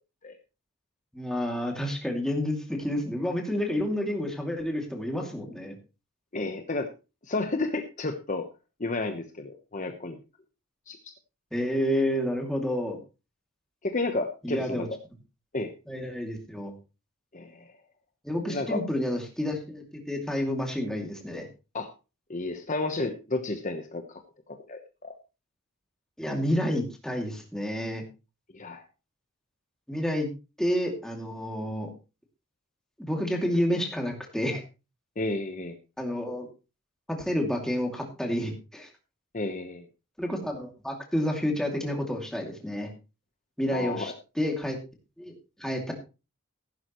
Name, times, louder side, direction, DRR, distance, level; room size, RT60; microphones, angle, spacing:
voice 1, 1.1-5.8 11.5-13.0 14.4-14.9 15.9-16.7 18.2-21.5 26.2-28.0 29.9-30.3 30.6-31.9 33.0-34.6 36.0-36.5 37.1-38.9 40.2-42.9 43.6-44.8 45.2-45.3 45.6-45.9, equal, 5° left, 2 dB, 2.5 m, -29 dB
voice 2, 6.3-6.9 7.3-8.5 8.8-10.2 10.9-11.1 13.8-15.0 15.5-15.7 17.3-17.7 18.5-18.8 21.7-21.9 22.3-24.2 24.7-25.2 28.5-28.8 35.2-35.8 39.3-39.8 43.7-44.1, left 2 dB, 35° left, 6 dB, 1.0 m, -31 dB
15.0 x 11.5 x 3.1 m, 0.30 s
head